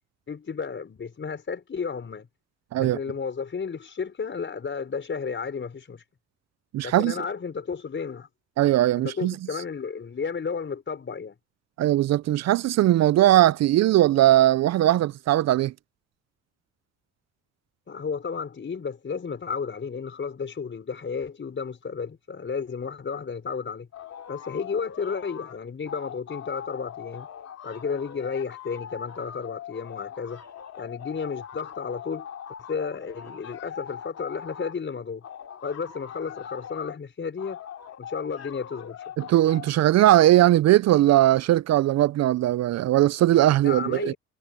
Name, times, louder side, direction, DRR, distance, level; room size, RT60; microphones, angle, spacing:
voice 1, 0.3-2.3 2.8-6.0 6.8-8.3 9.0-11.4 17.9-23.9 24.3-27.3 27.6-30.4 30.8-32.3 32.7-35.3 35.6-37.6 38.0-39.0 43.6-44.2, left 5 dB, 40° left, 5.3 m, -32 dB
voice 2, 6.7-7.1 8.6-9.3 11.8-15.7 39.2-44.1, right 14 dB, 60° right, 0.4 m, -19 dB
sound 1, 23.9-25.6 25.8-34.8 35.2-37.0 37.4-39.7, left 9 dB, 55° left, 2.7 m, -41 dB
cardioid pair, 90°, 30 cm